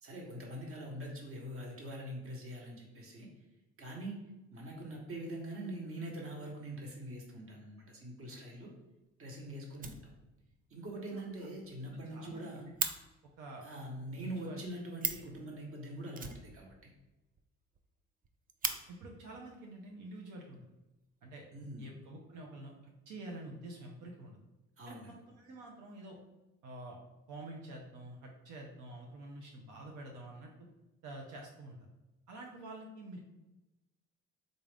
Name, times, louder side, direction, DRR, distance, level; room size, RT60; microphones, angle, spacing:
voice 1, 0.0-3.3 3.8-4.2 4.5-8.7 9.2-10.1 10.7-12.7 13.6-16.9 21.5-21.8 24.8-25.1, right 1 dB, 45° right, 0 dB, 1.1 m, -43 dB
Fire, 8.5-8.6 9.0-9.1 9.3-9.4 9.7-10.6 10.9-11.0 11.3-11.4 11.6-11.7 12.0-12.9 14.7-14.8 15.0-15.4 16.1-17.1 17.4-17.5 17.7-17.8 18.2-18.8 19.8-19.9 20.5-21.1, right 6 dB, 30° right, 0.3 m, -38 dB
voice 2, 12.1-12.8 13.4-13.6 14.1-14.6 18.9-20.7 21.2-21.4 21.8-24.4 24.9-26.2 26.6-27.0 27.3-30.7 31.0-31.8 32.3-33.2, right 2 dB, 80° right, 0 dB, 0.6 m, -48 dB
3.9 x 2.4 x 3.3 m, 1.0 s
cardioid pair, 90°, 30 cm